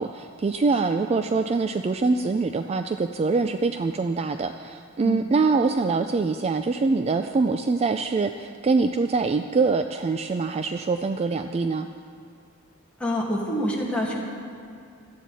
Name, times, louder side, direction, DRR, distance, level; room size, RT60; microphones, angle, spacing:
voice 1, 0.0-11.9, right 4 dB, 30° right, 8 dB, 0.3 m, -24 dB
voice 2, 13.0-14.2, equal, 5° left, -4 dB, 2.1 m, -26 dB
17.5 x 12.5 x 4.1 m, 2.4 s
head